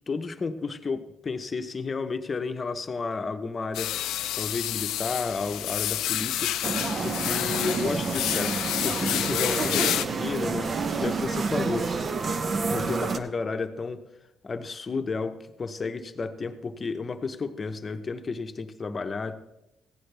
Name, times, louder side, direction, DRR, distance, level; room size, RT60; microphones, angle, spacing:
voice 1, 0.1-3.9 4.3-6.5 7.0-10.7 11.0-11.9 12.7-14.0 14.4-19.4, left 4 dB, 35° left, 8 dB, 0.9 m, -32 dB
sound 1, 3.7-10.1, left 13 dB, 90° left, 0.4 m, -29 dB
sound 2, 6.6-13.2, right 4 dB, 45° right, 0.8 m, -29 dB
15.5 x 9.6 x 3.4 m, 0.88 s
cardioid pair, 90°, 0 cm